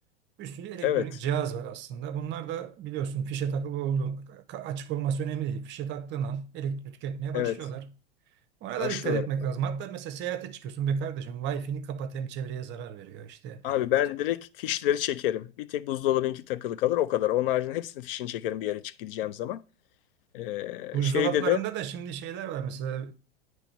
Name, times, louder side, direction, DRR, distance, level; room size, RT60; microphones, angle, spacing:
voice 1, 0.4-7.9 8.6-13.6 20.9-23.1, right 8 dB, 35° right, 0.6 m, -32 dB
voice 2, 8.8-9.2 13.6-19.6 20.3-21.6, left 13 dB, 55° left, 0.4 m, -28 dB
8.9 x 3.2 x 4.4 m
hypercardioid pair, 95°, 33 cm